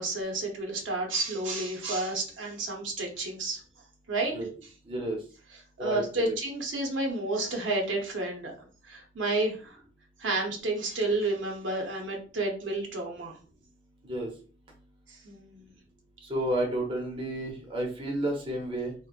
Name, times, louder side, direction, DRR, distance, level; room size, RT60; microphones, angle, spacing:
voice 1, 0.0-3.6 4.1-4.3 5.8-9.8 10.2-13.4 15.1-15.7, right 2 dB, 75° right, 0 dB, 0.7 m, -31 dB
voice 2, 4.9-5.2 5.8-6.3 14.0-14.3 16.2-18.9, right 1 dB, 30° right, -1 dB, 0.6 m, -31 dB
2.9 x 2.0 x 2.4 m, 0.38 s
head